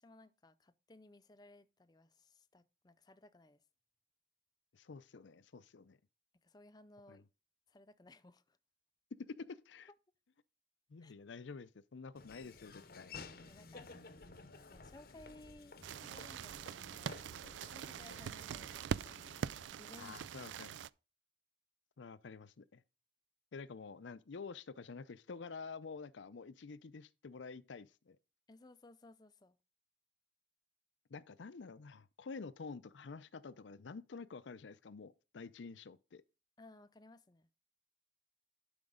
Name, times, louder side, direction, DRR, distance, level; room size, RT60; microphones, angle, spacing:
voice 1, 0.0-3.6 6.3-7.3 7.7-8.6 11.0-11.1 13.1-13.9 14.7-17.3 17.6-19.1 19.7-20.6 28.5-29.6 36.6-37.5, left 2 dB, 20° left, 0.4 m, -60 dB
voice 2, 4.7-6.0 7.1-7.2 9.3-9.9 10.9-13.1 20.0-20.8 22.0-22.8 23.5-28.2 31.1-36.2, left 4 dB, 85° left, 0.5 m, -49 dB
Laughter / Walk footsteps, 12.2-19.7, left 4 dB, 55° left, 0.8 m, -54 dB
sound 1, 15.8-20.9, right 8 dB, 85° right, 0.3 m, -43 dB
11.5 x 5.1 x 3.7 m
head